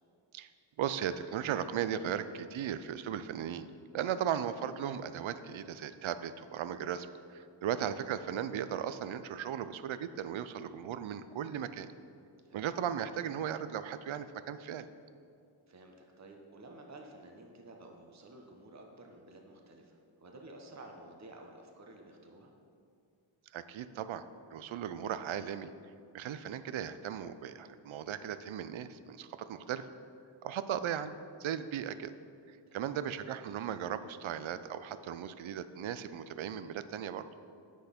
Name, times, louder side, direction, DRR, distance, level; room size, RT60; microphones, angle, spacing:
voice 1, 0.8-3.7 3.9-11.9 12.5-14.9 23.5-25.7 26.1-29.9 30.4-32.1 32.5-37.3, right 9 dB, 80° right, 12 dB, 0.5 m, -37 dB
voice 2, 15.7-22.5 32.7-32.9, right 2 dB, 35° right, 2 dB, 0.9 m, -52 dB
8.0 x 6.3 x 5.2 m, 2.4 s
wide cardioid pair, 75°, 47 cm